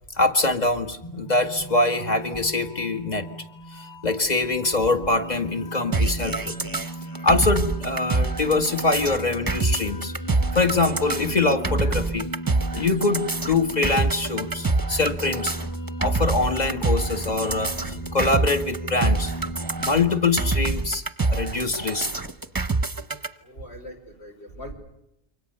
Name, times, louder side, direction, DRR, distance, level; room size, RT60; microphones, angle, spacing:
voice 1, 0.2-3.3 4.0-6.6 7.2-10.1 10.5-12.3 12.7-15.6 16.0-19.3 19.8-21.0 21.3-22.2, left 3 dB, 40° left, 7 dB, 2.1 m, -24 dB
sound 1, 1.0-20.5, right 1 dB, 15° left, 1.4 m, -36 dB
sound 2, 5.9-23.3, right 3 dB, 20° right, 0.9 m, -26 dB
voice 2, 23.4-24.7, equal, 70° left, 2 dB, 5.7 m, -40 dB
28.5 x 24.5 x 6.8 m, 0.83 s
omnidirectional pair, 1.2 m